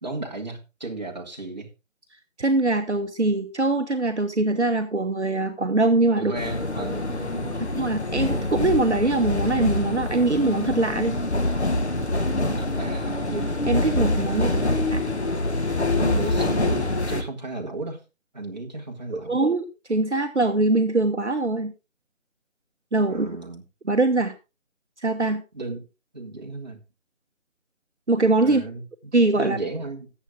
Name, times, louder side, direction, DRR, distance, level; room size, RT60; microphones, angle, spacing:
voice 1, 0.0-1.7 6.1-7.7 12.4-13.2 14.4-14.7 16.0-18.0 18.3-19.4 23.1-23.6 25.5-25.8 26.1-26.8 28.4-28.8 29.3-30.1, right 2 dB, 35° right, 1.9 m, -34 dB
voice 2, 2.4-6.3 7.7-11.2 13.3-14.5 14.9-15.0 19.3-21.7 22.9-23.3 23.8-24.3 25.0-25.4 28.1-28.6 29.1-29.6, right 2 dB, 60° right, 1.2 m, -22 dB
sound 1, 6.3-17.2, left 2 dB, 55° left, 1.8 m, -25 dB
13.5 x 8.2 x 3.6 m
figure-of-eight pair, 165°, 39 cm